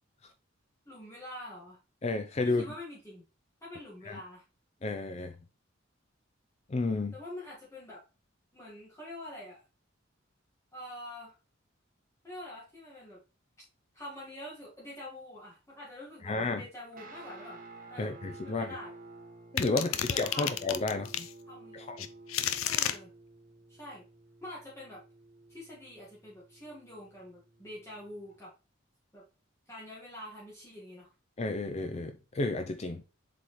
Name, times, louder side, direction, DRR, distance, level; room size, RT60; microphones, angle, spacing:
voice 1, 0.8-1.8 2.4-3.2 3.6-4.4 7.1-8.0 8.5-9.6 10.7-11.3 12.2-13.2 13.9-17.6 17.9-18.1 18.4-18.9 19.7-20.6 21.5-21.8 22.6-23.1 23.7-24.0 24.4-25.0 25.5-28.5 29.1-29.2 29.7-31.1, left 1 dB, 15° left, 1.7 m, -45 dB
voice 2, 2.0-2.6 4.1-4.2 4.8-5.3 6.7-7.1 16.2-16.6 18.0-18.7 19.5-21.3 21.7-22.1 31.4-33.0, left 3 dB, 30° left, 0.4 m, -32 dB
Guitar, 16.9-28.4, right 2 dB, 45° right, 1.3 m, -52 dB
sound 1, 19.6-21.3 22.0-23.0, left 10 dB, 90° left, 0.6 m, -31 dB
7.4 x 4.1 x 3.1 m
head